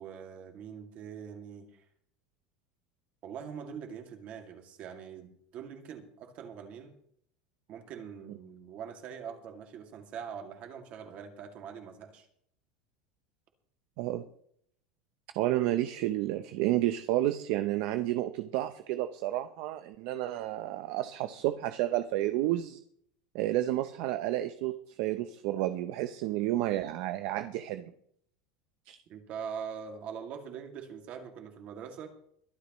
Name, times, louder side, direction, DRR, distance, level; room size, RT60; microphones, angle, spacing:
voice 1, 0.0-1.8 3.2-6.9 7.7-12.3 29.1-32.1, right 7 dB, 35° right, 3 dB, 2.3 m, -43 dB
voice 2, 15.4-22.8 23.3-27.9 28.9-29.0, right 14 dB, 55° right, 9 dB, 0.7 m, -31 dB
22.5 x 11.5 x 3.1 m, 0.67 s
supercardioid pair, 165°, 4 cm